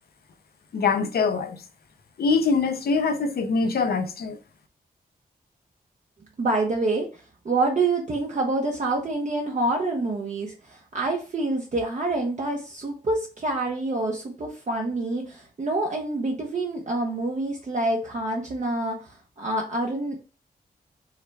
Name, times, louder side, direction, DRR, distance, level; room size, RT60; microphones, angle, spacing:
voice 1, 0.7-1.6 2.2-4.4, left 4 dB, 80° left, 0.6 m, -23 dB
voice 2, 6.4-20.2, right 2 dB, 50° right, 0.8 m, -27 dB
4.8 x 2.2 x 4.6 m
cardioid pair, 70°, 16 cm